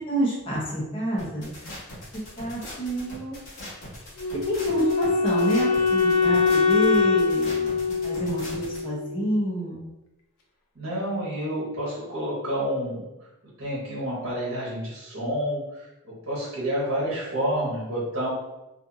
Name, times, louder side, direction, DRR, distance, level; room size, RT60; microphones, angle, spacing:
voice 1, 0.1-1.5 2.4-3.4 4.5-7.7 8.0-9.8, right 1 dB, 25° left, -5 dB, 0.7 m, -28 dB
sound 1, 1.2-8.8, left 1 dB, 65° left, 1.1 m, -40 dB
Wind instrument woodwind instrument, 4.2-9.2, left 5 dB, 90° left, 0.5 m, -23 dB
voice 2, 10.7-13.1 13.6-18.3, equal, 65° right, -7 dB, 1.0 m, -29 dB
2.5 x 2.5 x 2.6 m, 0.97 s
head